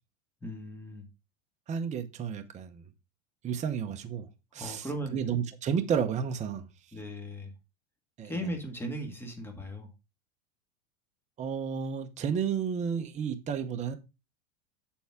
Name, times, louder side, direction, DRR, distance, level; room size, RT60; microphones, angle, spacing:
voice 1, 0.4-1.1 4.6-5.2 6.9-7.5 8.2-9.9, equal, 5° left, 1.8 m, -37 dB
voice 2, 1.7-2.8 3.4-6.7 8.2-8.5 11.4-13.9, right 7 dB, 20° right, 0.8 m, -32 dB
7.8 x 7.1 x 3.6 m
supercardioid pair, 145°, 39 cm